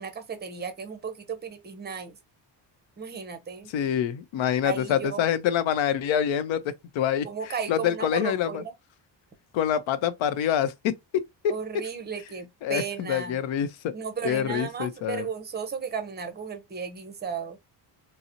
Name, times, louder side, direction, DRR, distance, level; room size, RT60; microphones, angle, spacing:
voice 1, 0.0-2.2 3.0-3.7 4.6-5.3 7.2-8.7 11.5-13.4 13.9-17.6, right 6 dB, 20° right, 0.6 m, -34 dB
voice 2, 3.7-6.6 6.9-8.6 9.5-11.2 12.6-13.9 14.2-15.3, left 9 dB, 75° left, 0.7 m, -26 dB
3.8 x 2.0 x 2.7 m
cardioid pair, 150°, 46 cm